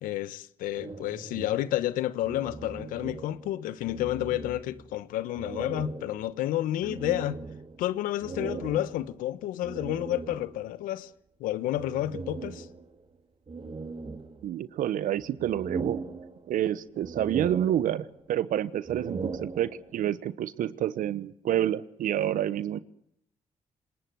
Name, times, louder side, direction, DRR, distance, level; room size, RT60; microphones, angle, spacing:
voice 1, 0.0-7.4 7.8-11.1 11.4-12.7, left 14 dB, 85° left, 1.1 m, -30 dB
sound 1, 0.7-3.6 3.8-4.9 5.3-10.8 11.7-13.0 13.5-14.8 15.2-16.7 17.0-18.3 18.7-20.1, right 4 dB, 40° right, 3.7 m, -40 dB
voice 2, 14.4-16.0 16.5-22.8, right 11 dB, 75° right, 1.1 m, -28 dB
27.5 x 19.5 x 7.8 m
supercardioid pair, 50°, 14 cm